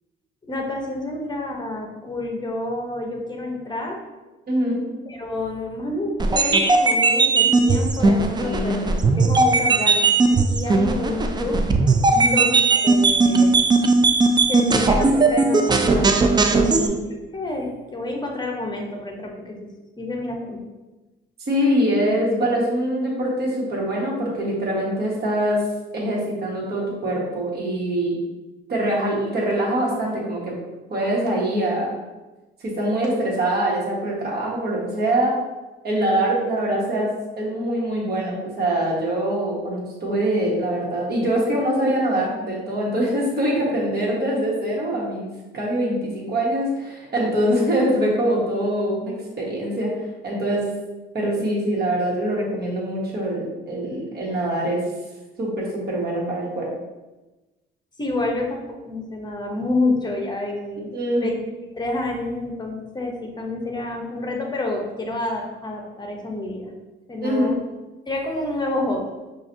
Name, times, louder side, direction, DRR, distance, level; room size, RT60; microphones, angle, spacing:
voice 1, 0.5-4.0 5.1-8.8 9.2-11.6 12.2-13.6 14.5-16.2 16.5-17.0 17.3-19.6 20.0-20.6 58.0-60.9 61.2-61.3 61.7-66.7 67.1-67.6 68.1-69.1, left 2 dB, 20° left, 1 dB, 0.8 m, -28 dB
voice 2, 4.5-4.9 8.4-9.0 12.1-12.5 16.6-17.0 21.4-25.6 25.9-28.2 28.7-30.5 30.9-32.0 32.6-35.4 35.8-37.1 37.4-50.7 51.1-54.8 55.4-56.7 60.9-61.3 67.2-67.5, right 1 dB, 55° right, -3 dB, 1.3 m, -24 dB
sound 1, 6.2-16.9, right 3 dB, 20° right, 0.3 m, -18 dB
5.7 x 2.5 x 2.6 m, 1.1 s
cardioid pair, 90°, 20 cm